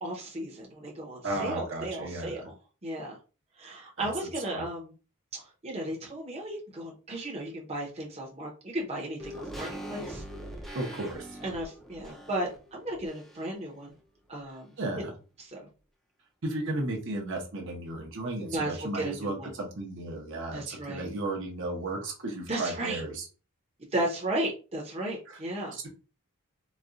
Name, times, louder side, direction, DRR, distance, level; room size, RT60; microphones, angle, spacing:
voice 1, 0.0-2.5 2.8-3.2 3.6-4.9 5.3-10.2 11.4-13.9 14.3-15.1 15.4-15.7 18.4-19.5 20.5-21.0 22.5-23.0 23.9-25.8, right 1 dB, 30° right, -2 dB, 0.8 m, -35 dB
voice 2, 1.2-2.5 4.0-4.1 4.5-4.6 10.7-11.4 14.8-15.1 16.4-23.3 25.3-25.4 25.7-25.9, right 2 dB, 55° right, 0 dB, 0.8 m, -34 dB
sound 1, 9.2-13.7 14.0-14.1, equal, ahead, 0.6 m, -42 dB
4.1 x 2.3 x 2.4 m, 0.33 s
head